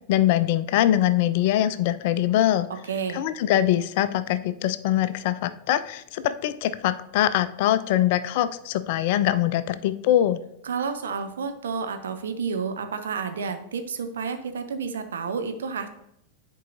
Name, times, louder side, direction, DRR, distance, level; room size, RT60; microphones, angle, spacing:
voice 1, 0.1-2.7 3.1-10.4, left 12 dB, 50° left, 13 dB, 0.4 m, -23 dB
voice 2, 2.9-3.2 10.6-15.9, right 5 dB, 65° right, 7 dB, 0.7 m, -30 dB
10.0 x 4.6 x 2.6 m, 0.76 s
figure-of-eight pair, 90°, 0 cm